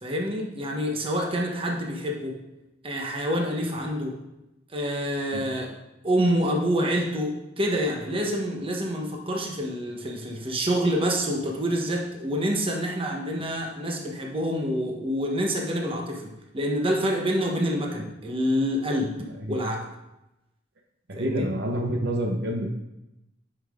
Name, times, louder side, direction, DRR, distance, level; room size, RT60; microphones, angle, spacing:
voice 1, 0.0-2.4 2.8-4.1 4.7-5.7 6.0-19.9 21.2-21.5, equal, 30° right, 0 dB, 1.3 m, -27 dB
voice 2, 21.1-22.7, right 1 dB, 60° right, 0 dB, 1.0 m, -28 dB
9.6 x 5.7 x 3.8 m, 0.92 s
head